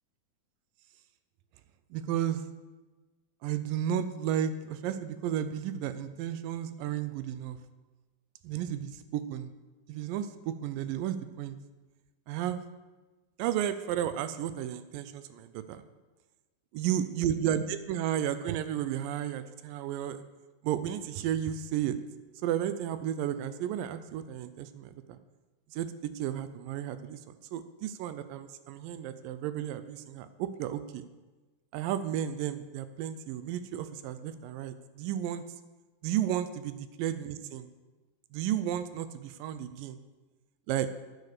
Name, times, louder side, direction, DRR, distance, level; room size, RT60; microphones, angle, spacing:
voice 1, 1.9-2.4 3.4-7.6 8.4-9.5 9.9-11.6 12.3-12.7 13.4-15.8 16.7-20.2 20.6-22.0 22.4-25.2 25.7-31.1 31.7-35.4 36.0-37.7 38.3-40.0 40.7-41.0, right 10 dB, 80° right, 12 dB, 2.2 m, -33 dB
9.8 x 8.6 x 6.6 m, 1.2 s
omnidirectional pair, 4.1 m